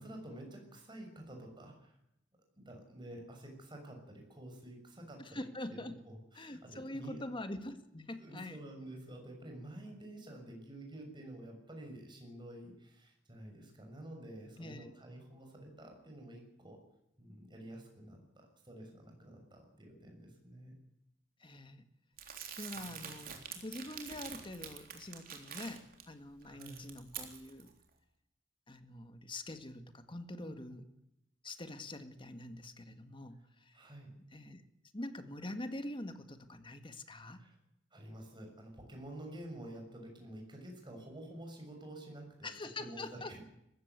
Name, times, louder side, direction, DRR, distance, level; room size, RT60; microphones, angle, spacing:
voice 1, 0.0-2.0 2.6-7.2 8.1-16.8 17.2-20.8 22.7-23.3 26.4-26.8 30.4-30.8 33.7-34.1 37.3-37.5 37.9-43.4, right 1 dB, 25° right, 2 dB, 6.6 m, -50 dB
voice 2, 5.2-5.9 6.3-8.6 14.6-14.9 21.4-21.8 22.6-27.7 28.7-30.8 31.4-33.7 34.3-34.6 34.9-37.4 42.4-43.3, left 1 dB, 25° left, 9 dB, 1.8 m, -45 dB
Crumpling crinkling, 22.2-26.0 26.4-27.7, right 7 dB, 50° right, 3.7 m, -46 dB
20.0 x 15.5 x 9.6 m, 0.83 s
head